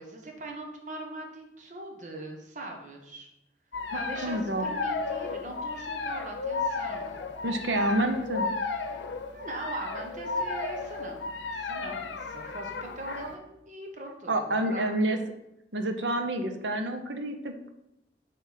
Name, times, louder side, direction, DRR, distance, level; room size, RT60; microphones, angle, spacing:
voice 1, 0.0-3.3 3.9-7.2 7.6-8.1 9.3-15.0, right 2 dB, 45° right, 1 dB, 1.2 m, -41 dB
sound 1, 3.7-13.4, left 4 dB, 90° left, 0.7 m, -34 dB
voice 2, 3.9-4.7 7.4-8.5 14.3-15.2 15.7-17.7, right 1 dB, 90° right, 7 dB, 0.8 m, -28 dB
7.4 x 3.4 x 5.7 m, 0.86 s
head